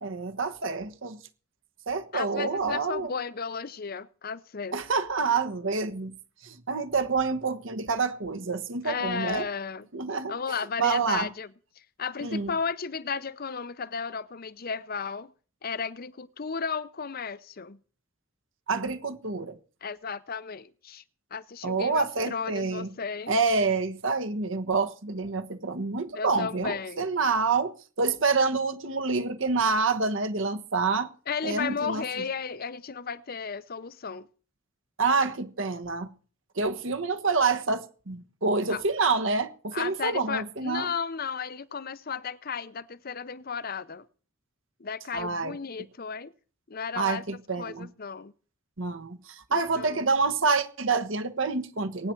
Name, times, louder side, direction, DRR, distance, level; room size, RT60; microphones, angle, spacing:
voice 1, 0.0-1.2 1.9-3.1 4.7-6.1 6.4-9.5 9.9-11.3 12.2-12.5 18.7-19.6 21.6-22.9 23.3-31.1 31.4-32.0 35.0-36.1 36.6-40.9 45.1-45.6 46.9-47.9 48.8-52.1, right 4 dB, 70° right, 1.3 m, -27 dB
voice 2, 2.1-4.8 8.8-9.9 10.3-11.5 12.0-15.3 15.6-17.8 19.8-21.0 21.3-23.4 26.1-27.1 31.3-34.3 38.7-39.1 39.7-44.0 44.8-46.3 46.7-47.2 47.6-48.3 49.5-50.1, left 6 dB, 45° left, 0.7 m, -34 dB
22.5 x 9.6 x 4.5 m
head